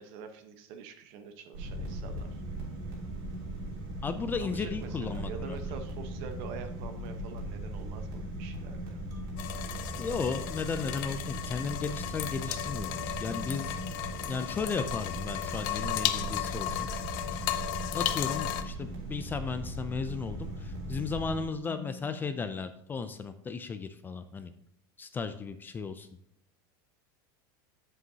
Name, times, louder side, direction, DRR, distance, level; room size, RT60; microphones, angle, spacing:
voice 1, 0.0-2.4 4.4-9.0 16.1-16.2 16.7-16.8, right 6 dB, 55° right, 8 dB, 1.0 m, -45 dB
sound 1, 1.5-21.5, right 1 dB, 80° right, 3.2 m, -38 dB
voice 2, 4.0-5.7 10.0-12.9 13.2-13.8 14.3-16.9 17.9-24.5 25.0-26.1, left 5 dB, 15° left, 10 dB, 0.4 m, -35 dB
sound 2, 9.1-10.8 13.3-15.3 17.3-19.4 21.6-23.7, left 6 dB, 30° right, 2.4 m, -51 dB
sound 3, 9.4-18.6, left 13 dB, 65° left, 0.7 m, -35 dB
7.9 x 7.8 x 2.8 m, 0.73 s
supercardioid pair, 145°, 12 cm